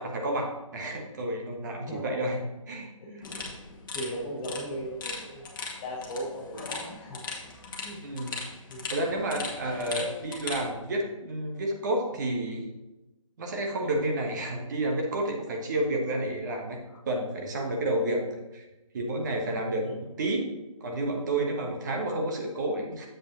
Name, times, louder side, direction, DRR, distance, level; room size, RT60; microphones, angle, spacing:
voice 1, 0.0-2.4 2.7-2.9 8.0-8.4 8.9-12.7 13.4-16.8 17.1-18.2 18.5-18.6 18.9-20.5 20.8-23.1, right 1 dB, 35° right, 1 dB, 1.2 m, -30 dB
voice 2, 1.9-2.2 3.0-3.5 3.9-5.5 5.8-7.2 7.6-8.0 8.7-8.9 9.8-10.0 16.8-17.0 19.8-20.0, equal, 15° left, -3 dB, 0.8 m, -38 dB
sound 1, 3.2-10.7, left 4 dB, 35° left, 1.4 m, -39 dB
7.6 x 5.1 x 4.2 m, 1.0 s
figure-of-eight pair, 150°, 18 cm